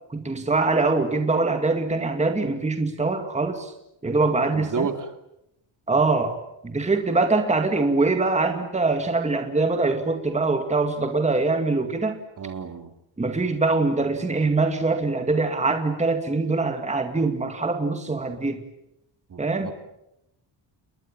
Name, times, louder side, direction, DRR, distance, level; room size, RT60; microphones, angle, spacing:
voice 1, 0.1-3.7 4.0-4.9 5.9-6.4 6.6-12.2 13.2-18.6 19.4-19.7, right 3 dB, 15° right, 5 dB, 2.3 m, -23 dB
voice 2, 4.5-5.1 12.4-12.9 19.3-19.7, right 6 dB, 40° right, 7 dB, 2.7 m, -31 dB
29.0 x 22.0 x 8.9 m, 0.83 s
wide cardioid pair, 165°, 47 cm